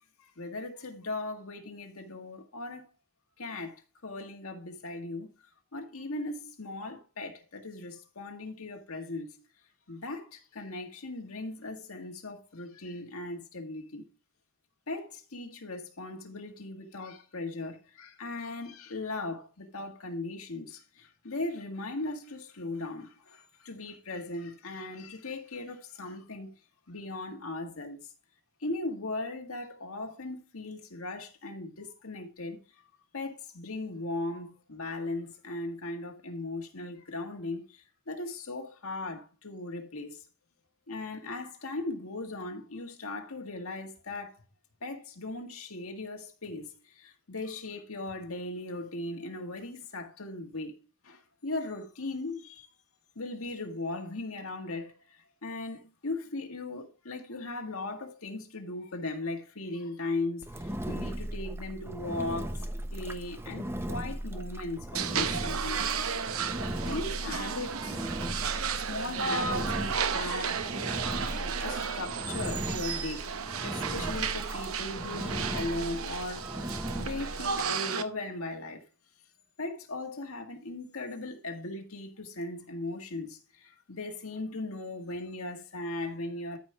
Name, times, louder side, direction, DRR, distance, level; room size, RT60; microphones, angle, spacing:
voice 1, 0.2-2.9 3.4-5.3 5.7-9.3 9.9-14.1 14.9-26.5 26.9-28.0 28.6-32.6 33.1-40.2 40.9-44.4 44.8-50.7 51.0-52.7 53.2-60.5 60.9-62.6 62.9-65.9 66.8-68.0 68.8-70.6 71.6-73.3 73.6-76.5 77.0-78.8 79.6-86.6, left 2 dB, 85° left, 1.8 m, -38 dB
Engine, 60.4-77.7, right 1 dB, 10° right, 0.8 m, -37 dB
sound 1, 64.9-78.0, right 6 dB, 80° right, 0.8 m, -33 dB
13.5 x 5.2 x 3.4 m
head